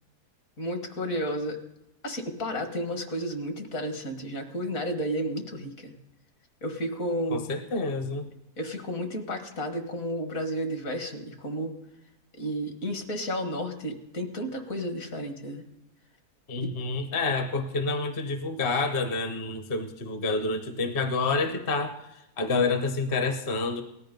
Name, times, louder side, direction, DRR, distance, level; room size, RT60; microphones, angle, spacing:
voice 1, 0.6-1.6 2.0-5.9 6.6-7.5 8.6-11.8 12.4-15.6 16.6-16.7, equal, 55° left, 6 dB, 2.0 m, -32 dB
voice 2, 7.3-8.3 16.5-23.8, left 3 dB, 40° left, 7 dB, 1.0 m, -28 dB
18.5 x 12.5 x 5.3 m, 0.89 s
omnidirectional pair, 1.7 m